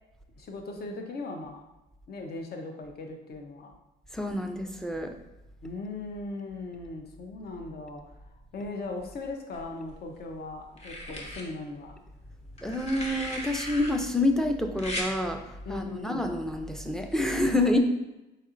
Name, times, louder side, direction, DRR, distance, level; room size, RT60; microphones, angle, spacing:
voice 1, 0.4-1.6 2.1-3.7 5.6-8.2 8.5-12.0 15.7-16.3 17.6-17.7, left 2 dB, 50° left, 3 dB, 0.8 m, -38 dB
voice 2, 4.1-5.1 12.6-17.8, left 1 dB, ahead, 5 dB, 0.4 m, -28 dB
sound 1, 9.5-10.2 10.8-11.4 12.6-13.9 14.8-15.1 16.5-16.7, left 1 dB, 35° left, 1.0 m, -37 dB
4.2 x 4.1 x 2.5 m, 0.95 s
cardioid pair, 90°, 20 cm